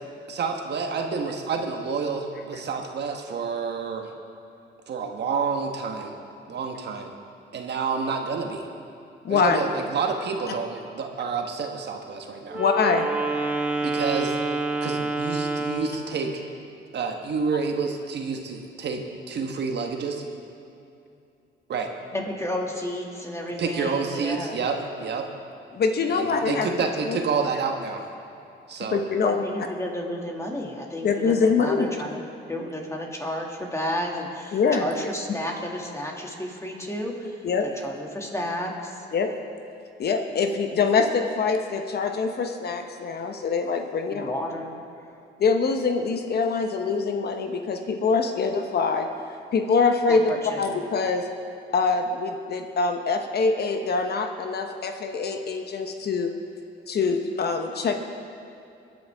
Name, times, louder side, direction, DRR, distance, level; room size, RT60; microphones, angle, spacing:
voice 1, 0.3-4.1 4.9-6.1 6.5-7.1 7.5-8.7 9.3-12.6 13.8-14.4 14.8-16.4 16.9-19.0 19.3-20.2 21.7-21.9 23.6-25.3 26.1-28.0 28.7-29.1, right 5 dB, 60° right, 3 dB, 1.3 m, -29 dB
voice 2, 9.2-9.6 12.5-13.1 25.7-26.7 27.1-27.2 28.9-29.4 31.0-31.9 34.5-34.9 37.4-37.7 39.1-39.3 40.0-44.3 45.4-49.1 49.5-50.3 50.6-51.2 51.7-56.3 56.9-58.0, left 4 dB, 55° left, 5 dB, 1.0 m, -24 dB
Wind instrument woodwind instrument, 12.5-16.0, right 3 dB, 10° right, 1.6 m, -27 dB
voice 3, 22.1-24.6 29.2-32.2 32.5-37.4 37.8-39.1 44.1-44.7 50.1-50.6, equal, 15° left, 0 dB, 2.2 m, -32 dB
22.0 x 9.2 x 3.5 m, 2.7 s
cardioid pair, 90°, 20 cm